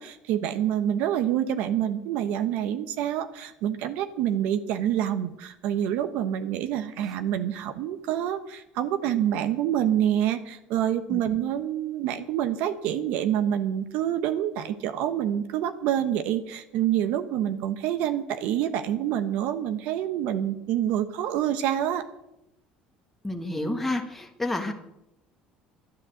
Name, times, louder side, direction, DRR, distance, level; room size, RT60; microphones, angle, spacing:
voice 1, 0.0-22.0, right 10 dB, 70° right, 9 dB, 1.1 m, -27 dB
voice 2, 23.2-24.7, left 2 dB, 5° left, 2 dB, 1.5 m, -29 dB
12.0 x 10.5 x 7.8 m, 0.86 s
cardioid pair, 130°, 3 cm